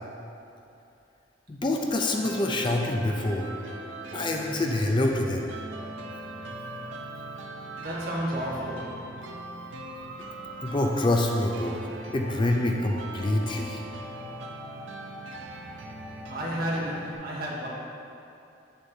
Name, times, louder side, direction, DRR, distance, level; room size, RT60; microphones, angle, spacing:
voice 1, 1.5-3.5 4.1-5.5 10.6-11.9 12.1-13.8, left 1 dB, 25° left, 1 dB, 0.4 m, -26 dB
sound 1, 2.2-17.1, right 2 dB, 90° right, 0.6 m, -40 dB
voice 2, 7.8-9.1 16.3-17.7, equal, 55° right, -5 dB, 1.3 m, -31 dB
8.1 x 6.4 x 2.7 m, 2.7 s
head